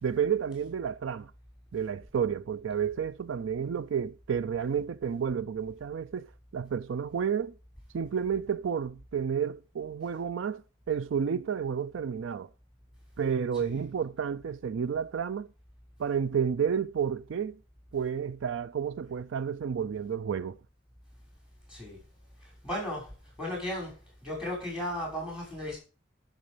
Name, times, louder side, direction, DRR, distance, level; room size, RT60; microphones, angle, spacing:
voice 1, 0.0-1.3 1.7-6.3 6.5-7.5 7.9-10.6 10.9-12.5 13.2-15.5 16.0-17.6 17.9-20.6, right 7 dB, 75° right, 0.4 m, -31 dB
voice 2, 13.5-13.9 21.7-22.0 22.6-23.1 23.4-23.9 24.2-25.8, left 1 dB, 5° right, 5.8 m, -35 dB
12.5 x 6.3 x 5.0 m
head